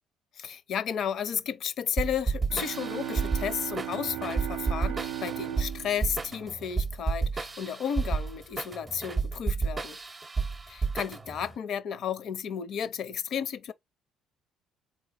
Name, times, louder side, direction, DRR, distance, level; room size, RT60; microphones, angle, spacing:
voice 1, 0.4-10.0 10.7-13.7, left 8 dB, 60° left, 0.5 m, -33 dB
sound 1, 2.0-11.5, right 4 dB, 30° right, 0.6 m, -31 dB
sound 2, 2.5-7.2, right 13 dB, 85° right, 0.4 m, -37 dB
3.8 x 2.8 x 4.0 m
hypercardioid pair, 60°, 0 cm